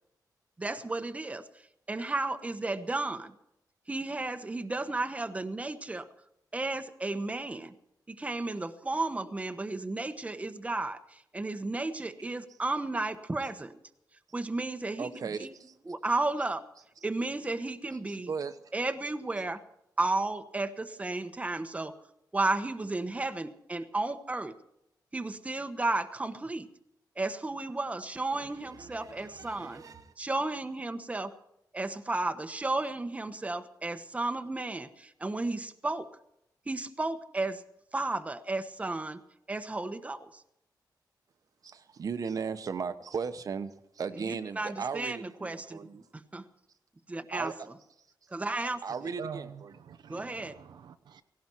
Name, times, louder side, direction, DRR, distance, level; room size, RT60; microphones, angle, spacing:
voice 1, 0.6-1.4 1.9-3.3 3.9-6.1 6.5-7.7 8.1-13.8 14.3-15.1 15.4-15.5 15.9-16.6 17.0-18.3 18.7-19.6 20.0-21.9 22.3-24.6 25.1-26.7 27.2-29.8 30.2-31.3 31.7-36.1 36.7-37.6 37.9-39.2 39.5-40.4 44.3-45.8 46.1-46.4 47.1-47.5 48.3-48.8 50.1-50.6, right 2 dB, 20° right, 8 dB, 1.1 m, -33 dB
voice 2, 15.0-15.8 18.3-18.6 28.3-30.1 41.6-46.0 47.3-47.7 48.8-49.7, right 5 dB, 55° right, 10 dB, 1.2 m, -37 dB
voice 3, 49.2-51.2, right 6 dB, 80° right, 10 dB, 0.9 m, -45 dB
17.5 x 17.5 x 4.6 m, 0.79 s
wide cardioid pair, 120°, 7 cm